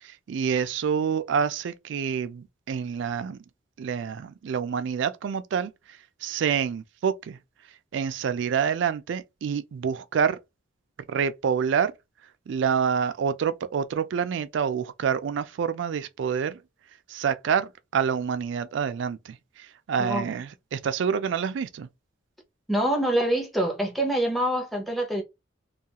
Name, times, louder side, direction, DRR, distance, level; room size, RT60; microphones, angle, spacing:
voice 1, 0.0-3.4 3.8-7.4 7.9-10.4 11.1-11.9 12.5-16.6 17.1-21.9, right 7 dB, 65° right, 0.3 m, -27 dB
voice 2, 20.0-20.3 22.7-25.2, right 1 dB, ahead, 0.6 m, -25 dB
2.3 x 2.3 x 2.8 m
head